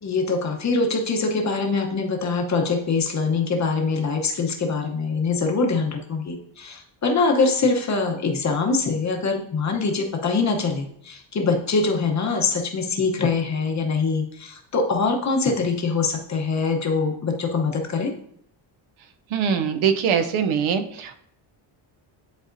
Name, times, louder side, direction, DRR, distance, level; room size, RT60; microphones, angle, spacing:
voice 1, 0.0-18.1, left 4 dB, 35° left, 2 dB, 0.9 m, -23 dB
voice 2, 19.3-21.3, right 7 dB, 75° right, 8 dB, 0.8 m, -23 dB
10.5 x 4.1 x 2.6 m, 0.68 s
cardioid pair, 160°, 49 cm